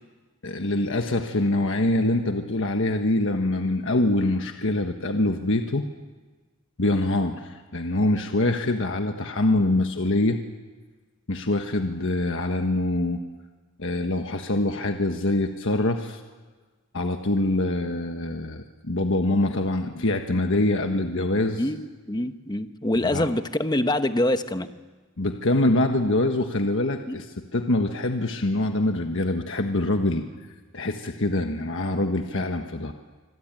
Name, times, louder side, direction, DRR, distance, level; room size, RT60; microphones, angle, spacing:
voice 1, 0.4-5.9 6.8-10.4 11.3-13.2 13.8-16.2 16.9-21.7 23.1-23.3 25.2-30.2 30.7-32.9, left 2 dB, 60° left, 5 dB, 1.4 m, -24 dB
voice 2, 22.1-24.7 27.1-27.2, left 1 dB, 20° left, 9 dB, 1.1 m, -25 dB
25.5 x 22.0 x 9.1 m, 1.4 s
head